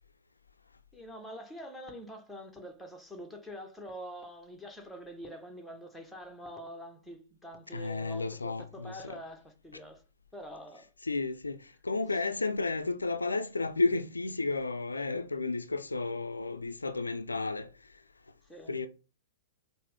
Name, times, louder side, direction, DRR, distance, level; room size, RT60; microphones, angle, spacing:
voice 1, 0.9-10.0 10.3-10.9 18.4-18.7, equal, 5° left, 0.9 m, -45 dB
voice 2, 7.7-9.2 11.0-18.0 18.7-18.9, left 3 dB, 80° left, 0.3 m, -32 dB
5.7 x 2.1 x 3.3 m
figure-of-eight pair, 105°, 0 cm